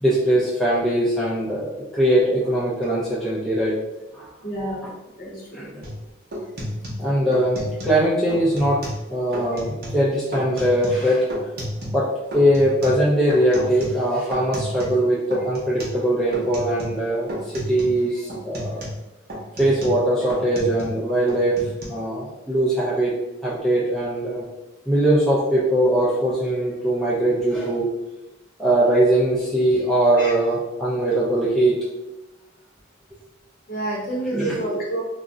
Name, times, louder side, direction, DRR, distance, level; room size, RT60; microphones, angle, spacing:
voice 1, 0.0-3.7 4.1-4.3 4.8-4.9 5.5-5.8 7.0-8.8 9.1-11.3 11.9-12.1 12.3-18.8 19.6-21.6 21.9-23.1 23.4-24.4 24.9-27.8 28.6-31.8 34.3-34.6, right 1 dB, ahead, -8 dB, 0.4 m, -21 dB
voice 2, 4.4-4.9 5.2-5.7 18.1-18.2 28.9-29.0 30.2-30.4 33.7-35.0, right 1 dB, 45° left, -3 dB, 0.7 m, -29 dB
sound 1, 5.8-6.0 6.3-8.0 8.3-9.1 9.3-10.0 10.3-12.1 12.3-15.0 15.3-16.0 16.3-17.0 17.3-18.0 18.3-21.0 21.3-21.8, equal, 50° right, 0.7 m, -32 dB
2.3 x 2.0 x 3.6 m, 0.99 s
head